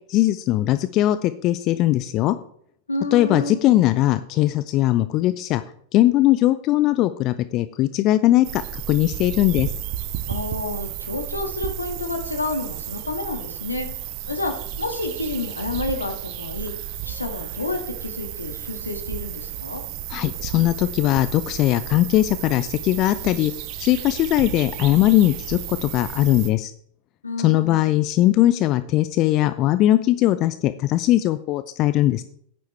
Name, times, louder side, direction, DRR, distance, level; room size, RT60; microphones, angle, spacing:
voice 1, 0.1-2.4 3.1-5.6 5.9-9.7 20.1-23.5 23.8-26.7 27.4-32.2, left 15 dB, 40° left, 13 dB, 0.4 m, -20 dB
voice 2, 2.9-3.6 10.3-13.9 14.3-14.5 14.8-16.7 17.0-19.8 27.2-27.8, left 2 dB, 80° left, 4 dB, 1.8 m, -29 dB
sound 1, 8.4-26.5, right 11 dB, 45° right, 0.8 m, -33 dB
11.5 x 9.3 x 3.3 m, 0.68 s
figure-of-eight pair, 90°, 0 cm